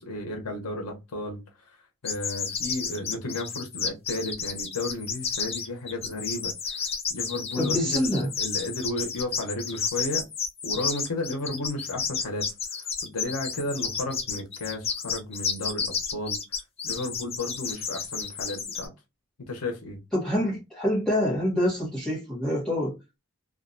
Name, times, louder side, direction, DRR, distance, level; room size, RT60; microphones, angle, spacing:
voice 1, 0.0-1.4 2.0-6.8 7.1-10.2 10.6-12.5 12.8-16.4 16.8-18.9 19.5-20.0, left 2 dB, 90° left, 0.8 m, -33 dB
sound 1, 2.0-18.9, left 6 dB, 25° left, 0.4 m, -31 dB
voice 2, 7.6-8.3 20.1-23.0, equal, ahead, 0.8 m, -26 dB
2.4 x 2.2 x 2.5 m
head